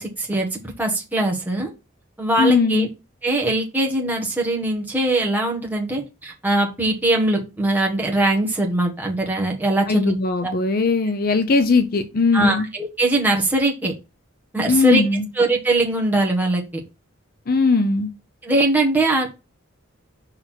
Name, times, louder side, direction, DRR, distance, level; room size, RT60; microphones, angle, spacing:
voice 1, 0.0-1.7 2.2-2.9 3.2-10.1 10.4-10.5 12.3-13.9 14.5-15.0 15.3-16.6 18.4-19.3, right 2 dB, 10° right, 1.6 m, -21 dB
voice 2, 2.4-2.9 9.9-12.7 14.7-15.3 17.5-18.1, left 3 dB, 50° left, 0.6 m, -19 dB
5.4 x 4.1 x 4.5 m
head